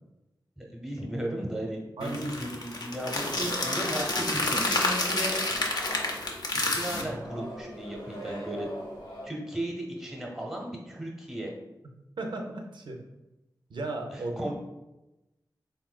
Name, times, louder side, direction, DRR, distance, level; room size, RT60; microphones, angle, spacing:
voice 1, 0.6-5.4 6.5-8.8 9.2-11.5 14.1-14.5, right 1 dB, 5° right, -1 dB, 0.8 m, -36 dB
sound 1, 2.0-7.0, left 2 dB, 60° left, 0.5 m, -29 dB
sound 2, 3.0-9.3, equal, 80° left, 1.1 m, -40 dB
voice 2, 3.3-3.7 12.2-13.0 13.7-14.5, right 2 dB, 75° right, 3 dB, 0.5 m, -35 dB
3.5 x 2.6 x 2.2 m, 0.99 s
cardioid pair, 55°, 8 cm